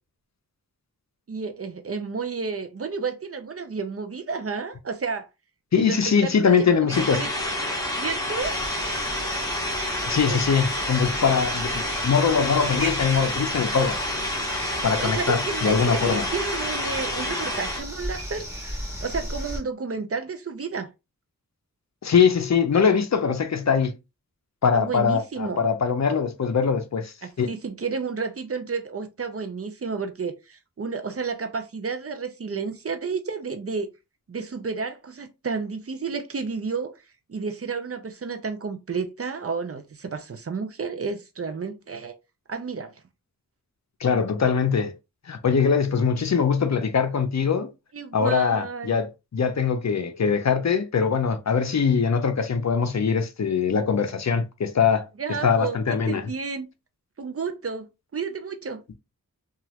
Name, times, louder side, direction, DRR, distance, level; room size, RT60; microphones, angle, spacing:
voice 1, 1.3-5.3 5.8-7.3 7.9-8.6 10.2-10.4 15.0-18.4 19.0-20.9 24.7-25.7 27.2-33.9 34.3-37.0 37.3-42.1 42.5-42.9 47.9-49.0 55.2-56.7 57.2-57.9 58.1-58.8, right 5 dB, 40° right, 0.6 m, -31 dB
voice 2, 5.7-7.2 10.1-14.0 14.8-16.3 22.0-23.9 24.6-27.5 44.0-44.9 45.3-47.7 48.1-55.1 55.4-56.2, left 6 dB, 50° left, 0.6 m, -22 dB
sound 1, 6.9-17.8, left 1 dB, 10° left, 0.9 m, -29 dB
sound 2, 8.4-19.6, equal, 10° right, 1.8 m, -36 dB
3.0 x 2.4 x 2.8 m
cardioid pair, 55°, 35 cm